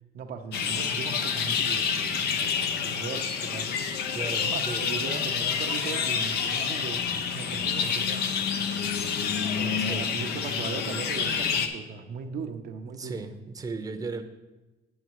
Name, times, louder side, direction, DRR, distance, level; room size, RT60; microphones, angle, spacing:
voice 1, 0.1-3.8 4.4-7.0 7.3-8.3 9.5-13.2, right 6 dB, 65° right, 5 dB, 0.7 m, -38 dB
sound 1, 0.5-11.7, left 6 dB, 70° left, 0.8 m, -28 dB
voice 2, 4.1-4.9 9.8-10.1 12.4-12.5 13.0-14.2, right 4 dB, 20° right, 6 dB, 0.7 m, -36 dB
9.3 x 6.4 x 4.7 m, 1.1 s
cardioid pair, 110°, 17 cm